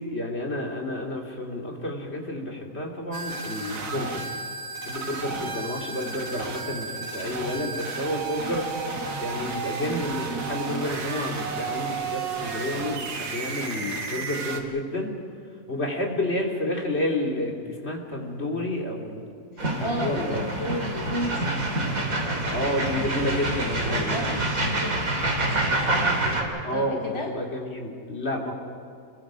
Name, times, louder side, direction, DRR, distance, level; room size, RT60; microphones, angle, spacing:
voice 1, 0.0-4.2 4.8-8.9 9.2-15.2 15.7-19.2 19.8-20.4 22.5-24.4 26.6-28.5, left 1 dB, 40° left, 1 dB, 3.1 m, -30 dB
sound 1, 3.1-14.6, right 4 dB, 85° right, 2.3 m, -33 dB
voice 2, 5.3-5.8 13.8-14.2 19.5-21.6 21.9-23.3 23.9-25.2 25.5-27.3, left 1 dB, 20° left, 2 dB, 1.4 m, -35 dB
sound 2, 19.6-26.4, right 1 dB, 60° right, 3.2 m, -26 dB
29.0 x 22.0 x 5.1 m, 2.4 s
omnidirectional pair, 1.7 m